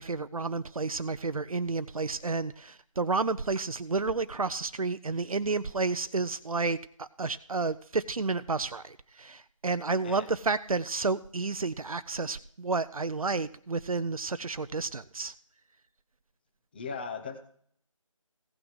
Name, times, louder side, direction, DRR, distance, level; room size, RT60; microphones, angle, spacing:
voice 1, 0.0-15.3, right 4 dB, 90° right, 13 dB, 0.6 m, -31 dB
voice 2, 16.7-17.4, left 5 dB, 20° left, 8 dB, 0.7 m, -37 dB
16.5 x 6.3 x 4.7 m, 0.62 s
figure-of-eight pair, 160°, 17 cm